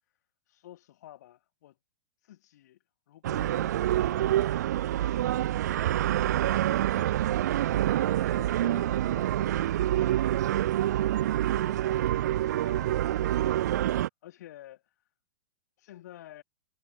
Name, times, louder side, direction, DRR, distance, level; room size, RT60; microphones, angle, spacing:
voice 1, 0.5-1.7 2.2-2.8 3.1-4.5 4.8-6.1 6.8-7.4 7.8-10.4 11.2-11.8 12.2-13.6 14.2-15.0 15.8-16.4, left 13 dB, 60° left, 3.4 m, -50 dB
sound 1, 3.2-14.1, right 13 dB, 65° right, 1.0 m, -27 dB
hypercardioid pair, 140°, 10 cm